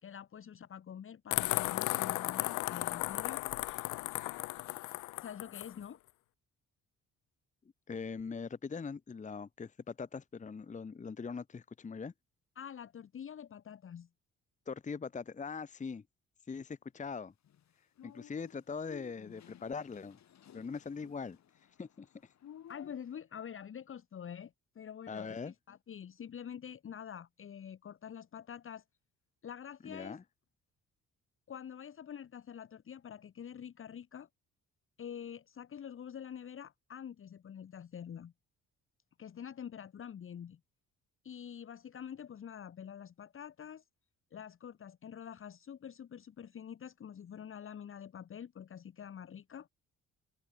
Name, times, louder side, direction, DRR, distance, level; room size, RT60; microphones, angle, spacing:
voice 1, 0.0-3.5 5.1-6.0 12.6-14.1 22.7-28.8 29.4-30.2 31.5-34.3 35.0-38.3 39.2-40.6 41.2-43.8 44.3-49.7, left 8 dB, 45° left, 1.1 m, -46 dB
sound 1, 1.3-5.7, left 20 dB, 85° left, 0.5 m, -35 dB
voice 2, 7.9-12.1 14.7-16.0 16.5-17.3 18.0-20.2 20.5-21.4 21.8-22.3 25.1-25.5 29.8-30.2, left 5 dB, 25° left, 0.9 m, -41 dB
sound 2, 17.4-23.2, left 10 dB, 65° left, 3.9 m, -56 dB
open air
cardioid pair, 90°, 30 cm